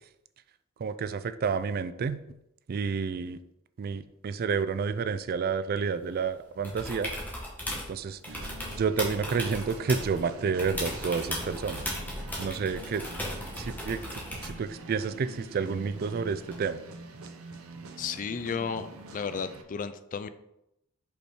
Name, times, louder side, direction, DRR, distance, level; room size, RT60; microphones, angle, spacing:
voice 1, 0.8-2.2 2.7-3.4 3.8-7.1 7.9-8.2 8.8-11.8 12.4-13.0 13.6-16.8, right 5 dB, 45° right, 13 dB, 0.3 m, -30 dB
sound 1, 6.6-7.9 8.2-10.2 10.6-14.6 16.5-16.6, equal, 10° left, 1.7 m, -36 dB
sound 2, 8.3-19.6, right 2 dB, 70° right, 0.8 m, -45 dB
voice 2, 18.0-20.3, left 6 dB, 40° left, 12 dB, 0.4 m, -33 dB
5.4 x 4.9 x 4.4 m, 0.83 s
head